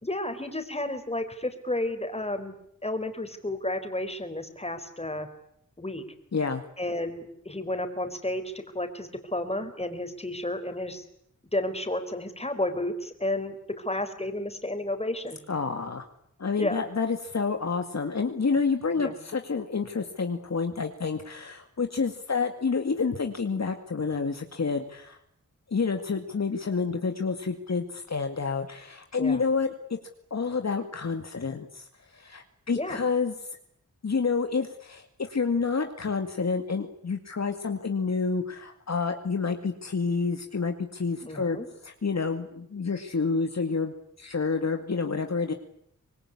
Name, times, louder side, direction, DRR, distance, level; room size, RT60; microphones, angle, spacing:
voice 1, 0.0-2.6 2.8-5.3 5.8-6.0 6.8-11.0 11.5-15.4 16.6-16.9 19.0-19.1 29.2-29.4 32.7-33.0 41.2-41.7, left 1 dB, 20° left, 8 dB, 4.2 m, -32 dB
voice 2, 6.3-6.6 15.5-16.1 16.4-25.2 25.7-30.0 30.3-31.9 32.1-33.3 34.0-41.6 41.8-45.5, left 4 dB, 60° left, 6 dB, 2.1 m, -29 dB
25.5 x 20.5 x 9.9 m, 0.71 s
wide cardioid pair, 70°, 31 cm